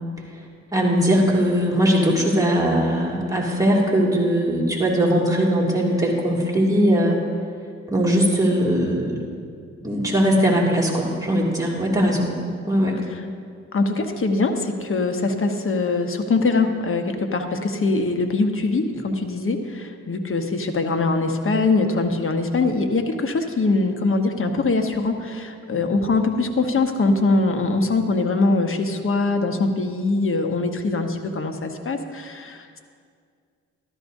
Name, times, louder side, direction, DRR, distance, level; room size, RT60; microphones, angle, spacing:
voice 1, 0.7-7.2 7.9-9.3 9.8-12.3 12.7-13.0, equal, 10° right, -3 dB, 2.4 m, -20 dB
voice 2, 13.7-32.8, left 3 dB, 45° left, 5 dB, 1.1 m, -22 dB
13.0 x 13.0 x 2.7 m, 2.2 s
cardioid pair, 70°, 30 cm